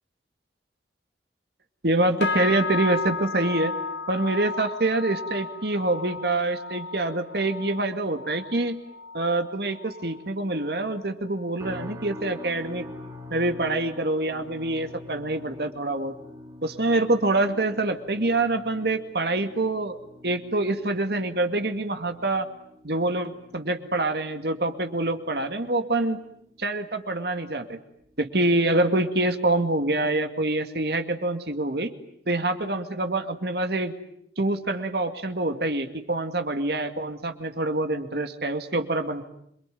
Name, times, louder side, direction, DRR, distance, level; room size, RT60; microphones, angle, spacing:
voice 1, 1.8-3.7 4.1-8.8 9.1-12.9 13.3-16.1 16.6-20.0 20.2-22.5 22.8-26.2 26.6-27.8 28.2-31.9 32.3-33.9 34.4-39.2, right 2 dB, 60° right, 7 dB, 2.2 m, -26 dB
sound 1, 2.2-11.8 12.1-12.5 12.9-13.2 13.8-13.9, left 4 dB, 80° left, 2.6 m, -35 dB
sound 2, 11.6-26.8 27.1-27.5 28.0-28.2, left 1 dB, 20° right, 4.0 m, -45 dB
27.0 x 23.5 x 9.3 m, 0.71 s
head